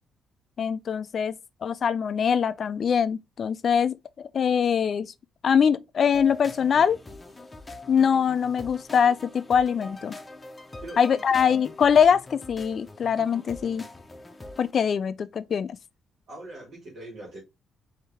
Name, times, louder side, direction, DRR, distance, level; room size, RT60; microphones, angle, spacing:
voice 1, 0.6-1.4 1.6-5.1 5.4-7.0 7.9-10.2 11.0-13.8 14.6-15.8, left 7 dB, 50° left, 0.4 m, -23 dB
sound 1, 6.1-14.7, left 2 dB, 20° left, 0.7 m, -43 dB
voice 2, 10.8-11.2 16.3-17.4, right 2 dB, 70° right, 1.9 m, -42 dB
4.5 x 2.8 x 3.4 m
cardioid pair, 90°, 0 cm